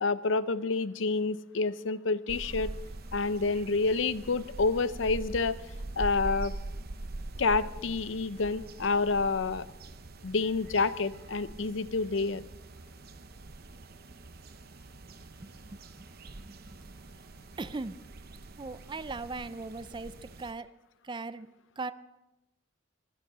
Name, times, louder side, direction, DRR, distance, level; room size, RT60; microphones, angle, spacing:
voice 1, 0.0-2.7 3.1-5.6 6.0-6.5 7.4-9.6 10.2-12.4, left 3 dB, 70° left, 15 dB, 0.6 m, -28 dB
sound 1, 2.3-20.5, right 2 dB, 50° right, 0.8 m, -43 dB
voice 2, 15.4-16.1 16.4-16.8 17.6-18.0 18.6-20.7 21.0-21.5 21.8-21.9, right 3 dB, 25° right, 14 dB, 0.4 m, -39 dB
22.5 x 9.4 x 5.5 m, 0.98 s
head